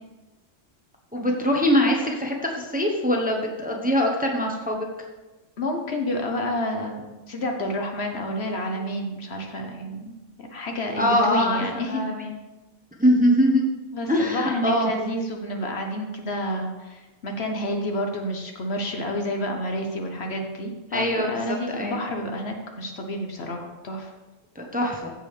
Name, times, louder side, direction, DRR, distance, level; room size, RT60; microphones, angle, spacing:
voice 1, 1.1-4.9 11.0-12.3 13.0-13.7 14.1-14.9 20.9-22.0 24.5-25.1, equal, 5° right, 0 dB, 1.0 m, -23 dB
voice 2, 5.6-12.0 13.9-24.1, left 1 dB, 55° left, 3 dB, 1.2 m, -29 dB
15.0 x 5.4 x 3.3 m, 1.1 s
omnidirectional pair, 1.3 m